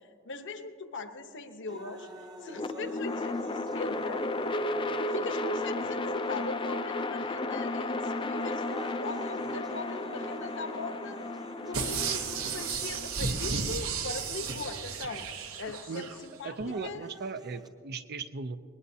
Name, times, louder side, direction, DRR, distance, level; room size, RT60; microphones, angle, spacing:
voice 1, 0.0-4.3 5.1-11.2 11.6-15.3 15.6-16.5 16.8-17.1, left 3 dB, 55° left, 7 dB, 1.0 m, -40 dB
sound 1, 1.7-5.7 6.4-6.5 7.4-7.7 8.2-13.7 14.7-14.8 16.2-17.7, right 1 dB, 20° right, 0.8 m, -48 dB
sound 2, 2.5-14.7, left 2 dB, 25° left, 0.5 m, -34 dB
sound 3, 11.7-16.2 16.6-16.7, right 5 dB, 70° right, 1.1 m, -33 dB
voice 2, 16.4-18.6, right 4 dB, 45° right, 11 dB, 0.5 m, -37 dB
20.0 x 19.5 x 2.8 m, 2.3 s
head